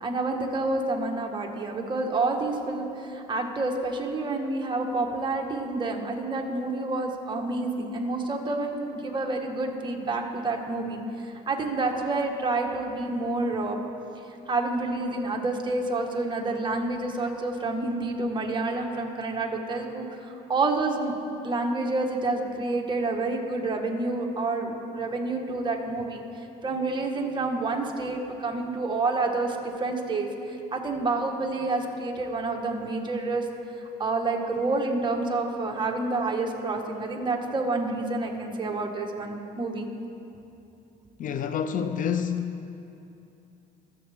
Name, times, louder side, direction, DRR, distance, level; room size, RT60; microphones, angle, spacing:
voice 1, 0.0-13.8 14.5-21.1 21.4-26.2 26.6-33.4 34.0-39.9, right 3 dB, 25° right, 1.5 m, -28 dB
voice 2, 41.2-42.7, left 7 dB, 50° left, 0.6 m, -28 dB
23.5 x 8.0 x 3.6 m
cardioid pair, 110°, 17 cm